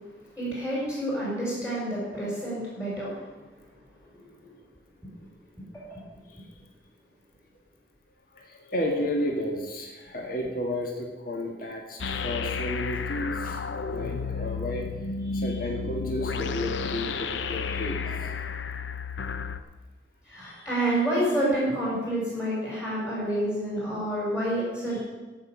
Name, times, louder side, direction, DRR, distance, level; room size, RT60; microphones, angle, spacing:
voice 1, 0.3-3.2 4.1-4.3 5.7-6.0 15.3-15.4 17.7-17.8 20.2-25.0, right 1 dB, 15° left, -7 dB, 4.6 m, -29 dB
voice 2, 8.3-13.6 13.9-14.9 15.3-18.3, left 1 dB, 50° left, 1 dB, 1.7 m, -32 dB
sound 1, 12.0-19.6, left 5 dB, 80° left, 0.7 m, -32 dB
14.0 x 6.1 x 7.5 m, 1.2 s
head